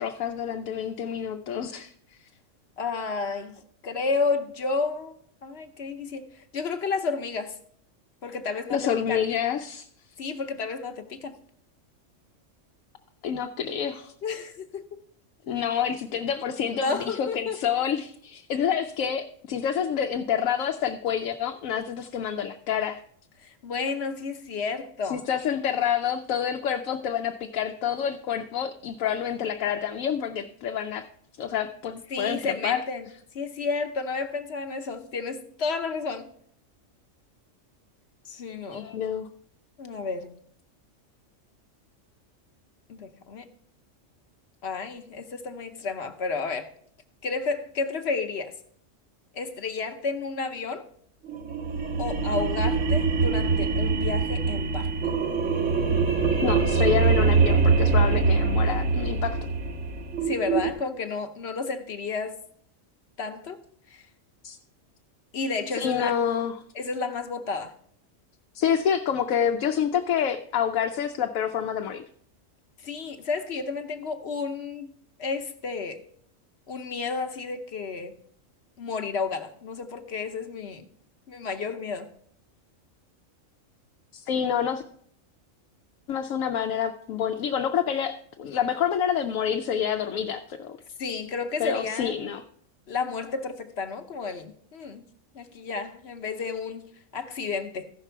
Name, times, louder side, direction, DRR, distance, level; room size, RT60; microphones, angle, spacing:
voice 1, 0.0-1.9 8.7-9.9 13.2-14.1 15.5-23.0 25.1-31.0 31.4-32.8 38.7-39.3 56.4-59.4 64.4-64.6 65.8-66.5 68.5-72.0 84.1-84.8 86.1-90.8 91.6-92.4, left 8 dB, 90° left, 1.0 m, -28 dB
voice 2, 2.8-5.2 5.4-7.6 8.2-9.2 10.2-11.4 14.2-15.0 16.8-17.6 23.4-25.2 32.1-33.1 33.3-36.3 38.2-38.9 39.8-40.4 42.9-43.5 44.6-46.7 47.2-48.5 49.3-50.8 52.0-54.9 60.3-62.4 63.2-63.6 63.9-64.0 65.3-66.2 66.7-67.7 72.8-74.9 75.2-76.0 76.7-78.1 78.8-80.9 81.3-82.1 91.0-92.2 92.9-95.0 95.3-97.9, left 4 dB, 60° left, 1.0 m, -31 dB
sound 1, 51.3-60.7, right 4 dB, 70° right, 1.4 m, -23 dB
14.5 x 5.9 x 4.5 m
omnidirectional pair, 1.3 m